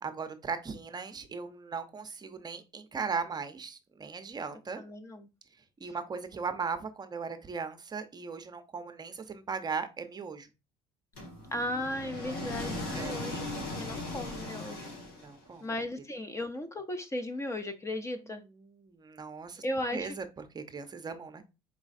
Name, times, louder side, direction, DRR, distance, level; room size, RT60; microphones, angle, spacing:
voice 1, 0.0-4.8 5.8-10.5 12.9-13.2 15.2-15.7 18.6-19.6 19.9-21.4, right 5 dB, 30° right, 9 dB, 0.7 m, -38 dB
voice 2, 4.8-5.3 5.8-5.9 11.5-13.4 13.8-14.9 15.6-18.4 19.6-20.2, left 1 dB, 20° left, 8 dB, 0.6 m, -36 dB
sound 1, 11.2-15.6, left 2 dB, 90° left, 1.8 m, -38 dB
4.7 x 3.1 x 2.5 m, 0.28 s
supercardioid pair, 95°, 14 cm